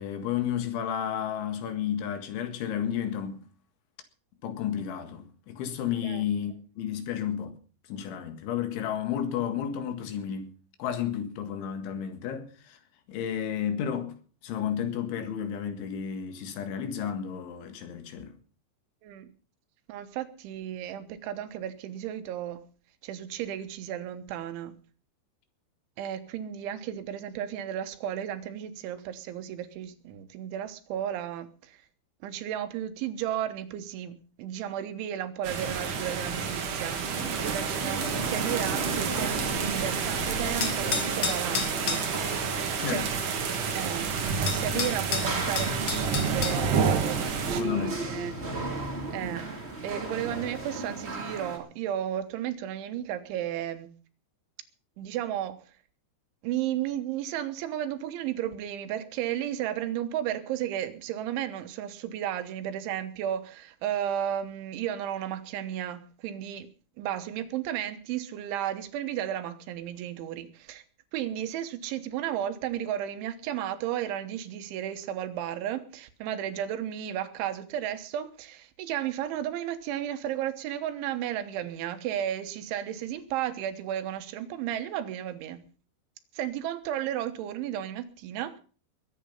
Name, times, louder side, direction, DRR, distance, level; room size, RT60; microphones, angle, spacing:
voice 1, 0.0-3.4 4.4-7.5 7.9-10.5 10.8-12.8 13.1-14.2 14.4-18.3 42.8-43.1 44.7-45.0 47.5-48.0, left 9 dB, 85° left, 4.2 m, -32 dB
voice 2, 19.9-22.6 23.0-24.8 26.0-31.8 32.2-42.3 42.9-43.3 43.7-48.4 49.1-49.5 49.8-53.9 55.0-55.6 56.4-66.7 67.0-70.8 71.1-85.6 86.3-88.6, right 11 dB, 85° right, 3.6 m, -34 dB
sound 1, 35.4-47.6, right 6 dB, 50° right, 3.2 m, -30 dB
sound 2, 35.5-51.6, right 3 dB, 20° right, 1.8 m, -36 dB
sound 3, 40.6-42.1 43.9-44.0 44.5-46.6, left 6 dB, 50° left, 1.8 m, -31 dB
21.0 x 8.8 x 5.6 m
omnidirectional pair, 5.3 m